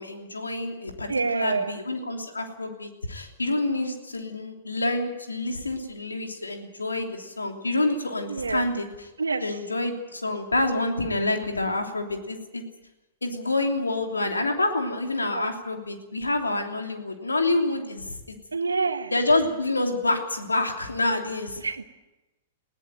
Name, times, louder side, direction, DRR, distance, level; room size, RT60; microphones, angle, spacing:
voice 1, 0.0-1.1 1.3-8.9 9.4-12.6 13.2-18.3 19.1-21.6, left 2 dB, 80° left, 4 dB, 3.0 m, -27 dB
voice 2, 1.1-1.8 8.3-8.7 9.2-9.4 15.3-15.5 18.5-19.1 21.6-21.8, right 4 dB, 80° right, 10 dB, 1.5 m, -27 dB
20.5 x 17.0 x 9.1 m, 1.0 s
figure-of-eight pair, 105°, 0 cm